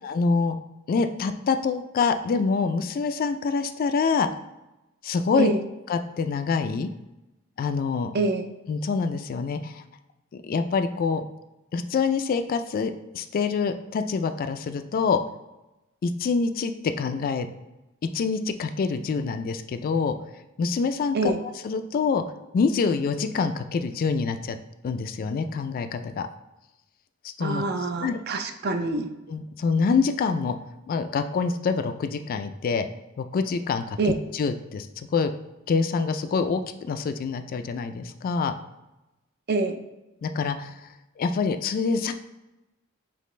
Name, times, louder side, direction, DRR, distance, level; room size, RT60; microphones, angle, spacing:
voice 1, 0.0-0.6 0.9-4.3 5.0-5.5 5.9-6.9 7.6-8.1 8.7-9.8 10.3-11.2 11.7-15.2 16.0-16.7 17.0-17.5 18.0-20.1 20.6-21.3 21.6-22.2 22.5-24.6 24.8-26.3 27.2-27.6 28.0-28.2 29.3-30.6 30.9-32.9 33.2-35.3 35.7-38.5 40.2-40.9 41.2-42.1, left 5 dB, 45° left, 9 dB, 0.3 m, -26 dB
voice 2, 8.1-8.5 21.1-21.4 27.4-29.1 34.0-34.1 39.5-39.8, right 3 dB, 50° right, 7 dB, 0.4 m, -26 dB
5.1 x 2.5 x 3.1 m, 0.98 s
head